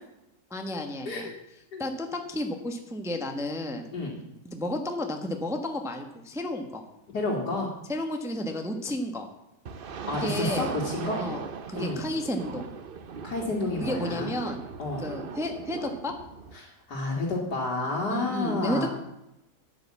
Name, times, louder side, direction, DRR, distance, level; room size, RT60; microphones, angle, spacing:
voice 1, 0.5-1.3 1.8-3.9 4.4-6.8 7.9-9.3 10.2-10.7 11.2-11.4 11.7-12.7 13.8-14.6 15.0-16.1 18.1-18.9, left 1 dB, ahead, 4 dB, 1.0 m, -32 dB
voice 2, 7.1-7.7 10.1-11.2 11.7-12.0 13.2-14.3 14.8-15.1 16.6-18.9, left 2 dB, 65° left, -4 dB, 2.6 m, -30 dB
sound 1, 9.6-16.6, right 6 dB, 50° right, 0.6 m, -38 dB
10.5 x 9.0 x 7.4 m, 0.88 s
omnidirectional pair, 1.9 m